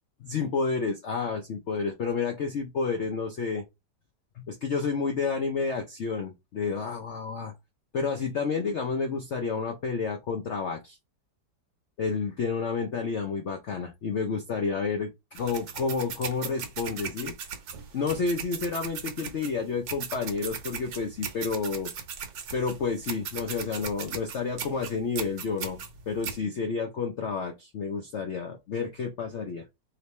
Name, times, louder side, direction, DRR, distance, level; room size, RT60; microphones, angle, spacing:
voice 1, 0.2-3.6 4.4-7.5 7.9-11.0 12.0-17.3 17.9-21.9 22.5-29.6, left 5 dB, 70° left, 0.6 m, -30 dB
sound 1, 15.3-26.4, right 7 dB, 65° right, 1.3 m, -38 dB
3.3 x 2.9 x 4.1 m
omnidirectional pair, 2.0 m